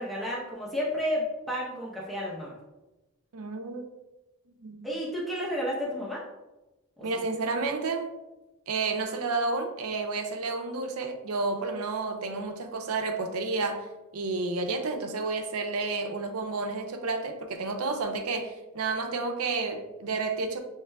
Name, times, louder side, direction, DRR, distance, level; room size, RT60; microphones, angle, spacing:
voice 1, 0.0-2.5 4.8-6.2 7.1-7.2, equal, ahead, -6 dB, 0.6 m, -31 dB
voice 2, 3.3-3.8 4.6-4.9 7.0-8.1 8.7-13.9 14.1-20.6, right 3 dB, 80° right, 5 dB, 0.6 m, -31 dB
5.9 x 3.1 x 2.2 m, 1.0 s
head